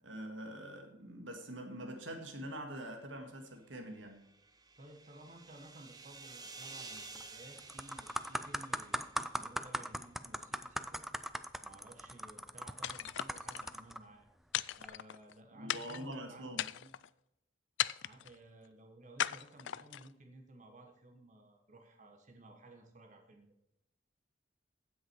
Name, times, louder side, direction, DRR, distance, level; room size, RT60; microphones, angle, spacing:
voice 1, 0.0-4.2 15.5-16.6, right 1 dB, 85° right, 1.9 m, -44 dB
sound 1, 4.0-9.6, right 3 dB, 20° right, 0.9 m, -52 dB
voice 2, 4.8-9.0 9.3-11.0 11.6-14.2 14.8-16.9 18.0-23.5, right 1 dB, 40° right, 1.6 m, -56 dB
sound 2, 7.0-7.2 7.6-14.0 14.7-14.9, equal, ahead, 0.4 m, -40 dB
sound 3, 12.8-13.7 14.5-15.3 15.7-16.1 16.5-17.1 17.8-18.3 19.2-20.1, left 12 dB, 75° left, 0.4 m, -37 dB
16.0 x 6.3 x 4.7 m
head